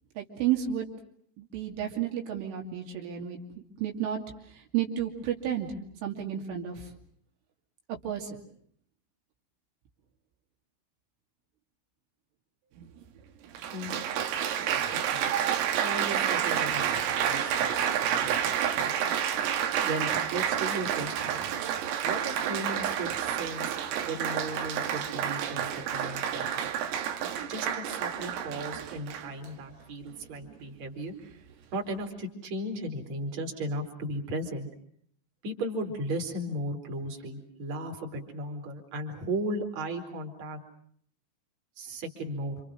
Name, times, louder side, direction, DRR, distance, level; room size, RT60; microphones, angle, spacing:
voice 1, 0.2-0.9 1.4-3.4 3.8-4.2 4.5-5.7 6.0-6.9 7.9-8.4, right 10 dB, 70° right, 1 dB, 5.1 m, -31 dB
Applause, 12.8-12.9 13.5-29.5 30.2-30.5, right 9 dB, 90° right, 4.7 m, -29 dB
voice 2, 14.7-15.3 15.8-18.9 19.8-21.4 22.0-23.8 24.0-26.7 27.5-31.1 31.7-34.7 35.4-40.6 41.8-42.6, right 1 dB, 35° right, 2 dB, 4.9 m, -36 dB
29.0 x 28.0 x 6.3 m, 0.63 s
omnidirectional pair, 5.9 m